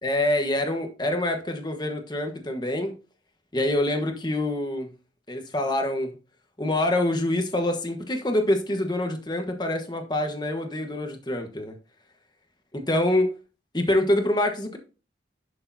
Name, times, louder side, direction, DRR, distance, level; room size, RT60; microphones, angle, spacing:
voice 1, 0.0-2.9 3.5-4.9 5.3-6.1 6.6-11.7 12.7-13.3 13.7-14.8, left 1 dB, 25° left, 4 dB, 1.3 m, -25 dB
11.0 x 6.8 x 2.7 m, 0.32 s
head